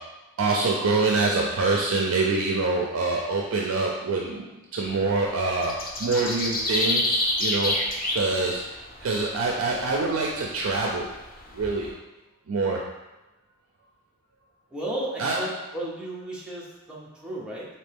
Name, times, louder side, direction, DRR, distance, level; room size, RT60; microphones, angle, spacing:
voice 1, 0.4-4.4 4.7-7.7 8.1-11.1 11.5-11.9 12.5-12.8 15.2-15.4, right 3 dB, 70° right, -1 dB, 0.4 m, -25 dB
sound 1, 4.8-11.9, left 1 dB, 45° left, 0.7 m, -29 dB
voice 2, 14.7-17.7, right 1 dB, 5° right, -5 dB, 0.8 m, -34 dB
4.2 x 2.7 x 3.4 m, 1.0 s
head